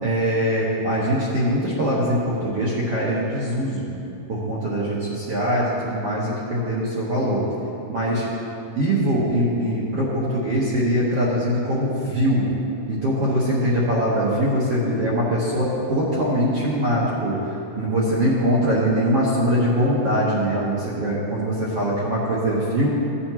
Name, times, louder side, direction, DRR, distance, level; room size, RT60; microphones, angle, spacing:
voice 1, 0.0-3.9 4.3-7.4 7.9-8.3 8.7-12.5 12.9-22.9, equal, 65° right, -7 dB, 1.5 m, -22 dB
16.0 x 8.6 x 3.0 m, 2.8 s
omnidirectional pair, 4.6 m